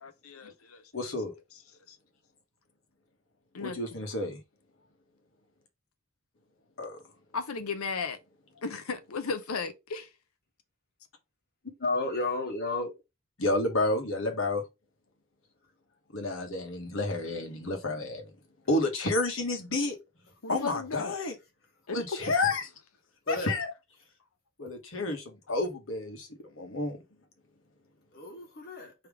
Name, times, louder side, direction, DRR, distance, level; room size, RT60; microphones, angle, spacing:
voice 1, 0.0-0.8 1.9-2.0 3.5-3.8 7.3-8.2 8.6-10.1 20.4-21.2 21.9-22.0, left 4 dB, 85° left, 0.8 m, -35 dB
voice 2, 0.9-1.3 3.6-4.4 6.8-7.0 13.4-14.6 16.1-18.3 18.7-20.0 20.5-21.4 21.9-22.7 23.3-23.7 24.6-26.3 26.6-27.0, left 2 dB, 65° left, 1.3 m, -30 dB
voice 3, 11.8-12.9 23.3-23.5 28.1-28.9, left 2 dB, 45° left, 1.3 m, -32 dB
3.6 x 3.1 x 4.8 m
head